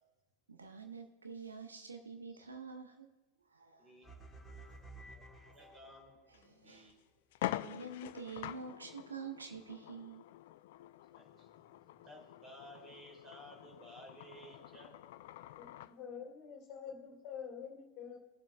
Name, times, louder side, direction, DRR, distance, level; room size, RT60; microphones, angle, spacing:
voice 1, 0.5-3.1 3.5-3.8 4.6-4.8 5.4-5.6 6.6-6.9 7.6-10.2, right 5 dB, 75° right, 6 dB, 0.8 m, -47 dB
voice 2, 3.8-4.5 4.9-7.0 11.1-14.9, equal, 20° right, -1 dB, 3.1 m, -56 dB
sound 1, 4.0-6.4, right 2 dB, 10° left, 1.4 m, -53 dB
sound 2, 6.3-6.5 6.9-7.0 7.3-16.0, left 14 dB, 50° left, 0.3 m, -46 dB
voice 3, 15.6-18.2, left 7 dB, 35° left, 3 dB, 2.0 m, -47 dB
17.5 x 7.3 x 2.3 m, 1.1 s
figure-of-eight pair, 90°, 0 cm